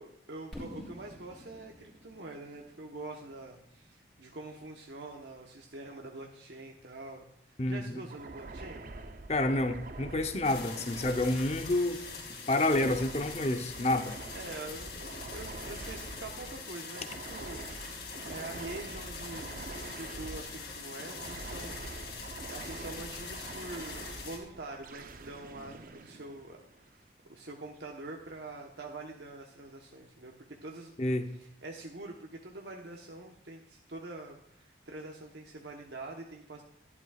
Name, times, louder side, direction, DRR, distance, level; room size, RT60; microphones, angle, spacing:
voice 1, 0.0-7.3 7.7-8.8 12.1-12.3 14.3-17.9 18.2-22.1 22.5-26.9 27.3-36.6, right 2 dB, 75° right, 1 dB, 1.1 m, -45 dB
Fireworks, 0.5-4.4, equal, ahead, 3.4 m, -49 dB
voice 2, 7.6-8.0 9.3-12.0 12.5-14.2 31.0-31.3, left 2 dB, 35° left, 7 dB, 0.8 m, -29 dB
sound 1, 8.1-27.0, right 2 dB, 50° right, 0.6 m, -45 dB
sound 2, 10.4-24.4, left 5 dB, 60° left, 2.4 m, -44 dB
12.0 x 11.0 x 2.4 m, 0.73 s
head